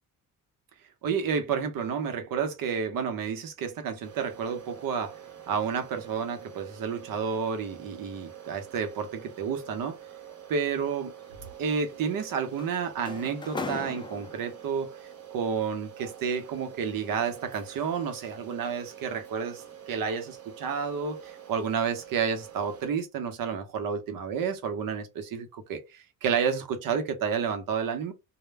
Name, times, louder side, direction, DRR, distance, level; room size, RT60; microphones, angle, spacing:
voice 1, 1.0-5.2 5.5-10.0 10.5-11.1 11.6-14.9 15.3-28.1, right 6 dB, 80° right, 0.8 m, -30 dB
sound 1, 4.0-22.9, right 10 dB, 50° right, 0.9 m, -47 dB
sound 2, 11.9-14.9 16.0-17.9 18.3-18.6 19.0-19.3, left 3 dB, 15° left, 0.4 m, -40 dB
2.1 x 2.0 x 3.3 m
cardioid pair, 125°, 33 cm